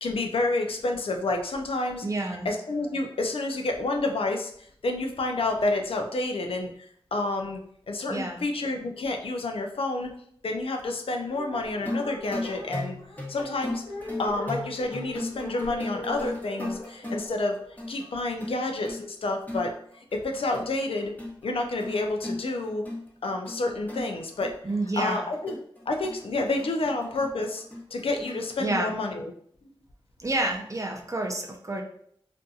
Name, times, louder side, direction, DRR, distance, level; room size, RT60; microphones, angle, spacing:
voice 1, 0.0-2.1 2.4-7.6 7.9-10.1 10.4-13.0 13.3-13.8 14.2-17.6 17.9-21.1 21.4-22.8 23.2-24.5 25.0-25.6 25.9-27.6 27.9-29.3, left 2 dB, 80° left, 3 dB, 0.4 m, -29 dB
voice 2, 2.0-2.5 8.1-8.4 24.6-25.3 28.6-28.9 30.2-31.8, right 2 dB, 35° right, 3 dB, 0.5 m, -29 dB
sound 1, 11.2-18.4, left 2 dB, 45° left, 0.6 m, -41 dB
sound 2, 11.8-28.5, left 1 dB, 15° left, 0.9 m, -37 dB
2.6 x 2.5 x 2.3 m, 0.64 s
wide cardioid pair, 50°, 9 cm